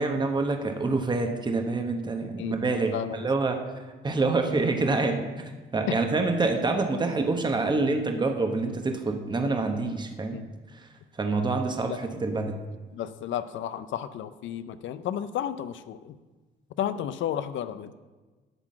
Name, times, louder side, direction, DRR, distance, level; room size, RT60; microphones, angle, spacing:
voice 1, 0.0-3.6 4.0-10.4 11.2-12.6, right 3 dB, 20° right, 4 dB, 1.0 m, -26 dB
voice 2, 2.4-3.3 10.3-10.4 11.9-12.0 12.9-16.2 16.8-17.9, left 10 dB, 70° left, 13 dB, 0.5 m, -33 dB
11.0 x 3.8 x 7.4 m, 1.3 s
cardioid pair, 90°, 20 cm